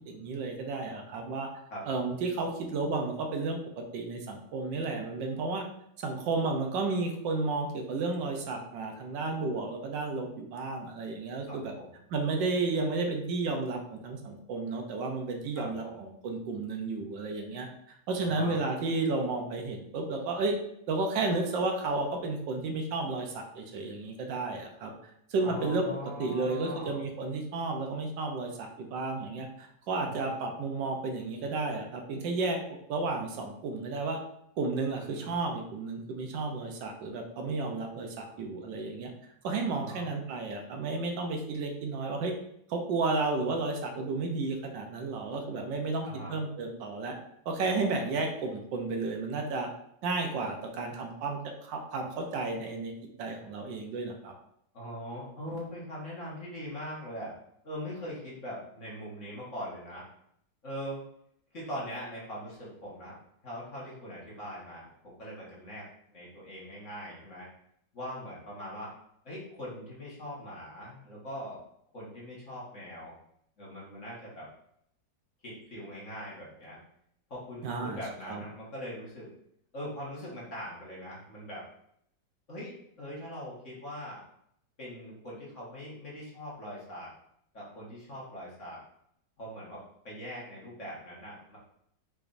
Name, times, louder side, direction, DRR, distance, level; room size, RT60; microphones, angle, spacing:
voice 1, 0.1-1.5 1.9-5.6 6.0-11.7 12.1-17.7 18.1-20.5 20.9-24.9 25.3-25.9 26.2-32.6 32.9-34.2 34.6-39.1 39.4-42.3 42.7-47.2 47.4-49.7 50.0-52.9 53.2-54.3 77.6-78.0 78.3-78.4, right 3 dB, 80° right, 3 dB, 1.4 m, -32 dB
voice 2, 1.7-2.2 11.5-12.0 15.6-16.0 18.2-18.6 25.4-27.0 30.1-30.4 35.0-35.4 39.7-40.1 46.0-46.4 54.7-57.3 57.6-60.0 60.6-61.0 61.5-63.2 63.4-67.5 67.9-68.9 69.2-71.6 71.9-73.1 73.6-74.5 75.4-76.8 77.3-79.3 79.7-81.7 82.5-84.2 84.8-87.1 87.5-88.8 89.4-91.6, equal, 45° left, -7 dB, 1.8 m, -41 dB
5.7 x 3.5 x 2.6 m, 0.71 s
omnidirectional pair, 2.0 m